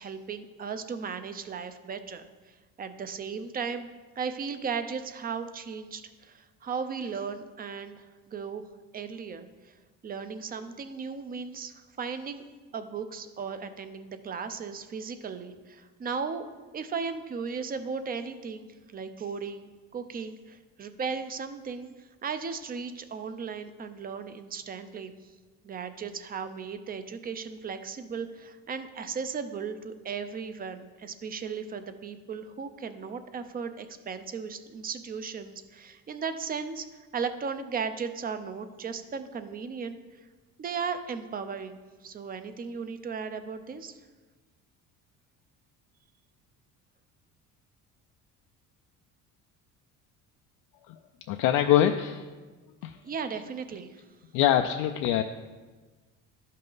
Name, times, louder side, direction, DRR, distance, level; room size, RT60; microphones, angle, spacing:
voice 1, 0.0-3.9 4.2-8.6 8.9-9.7 10.0-12.4 12.7-16.4 16.7-25.1 25.6-36.9 37.1-40.0 40.6-44.0 53.0-54.0, right 5 dB, 30° right, 10 dB, 0.5 m, -36 dB
voice 2, 51.3-52.3 52.8-53.0 54.3-55.2, left 11 dB, 80° left, 5 dB, 0.5 m, -24 dB
11.5 x 5.5 x 3.9 m, 1.3 s
cardioid pair, 130°, 31 cm